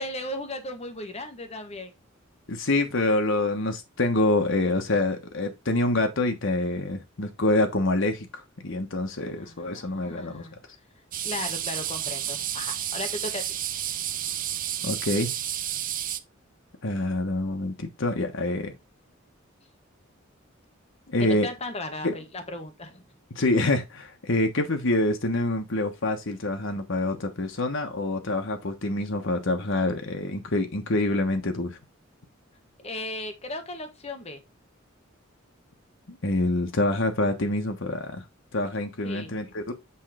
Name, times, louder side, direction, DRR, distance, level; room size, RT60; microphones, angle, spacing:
voice 1, 0.0-1.9 9.2-10.5 11.2-13.6 21.2-23.0 32.8-34.4 39.0-39.3, left 2 dB, 30° left, 1.3 m, -36 dB
voice 2, 2.5-8.3 8.6-10.5 14.8-15.3 16.8-18.7 21.1-21.5 22.0-22.1 23.3-31.8 36.1-38.2 38.5-39.7, left 2 dB, 65° left, 1.2 m, -26 dB
sound 1, 11.1-16.2, right 11 dB, 45° right, 0.7 m, -31 dB
8.4 x 3.2 x 4.9 m
head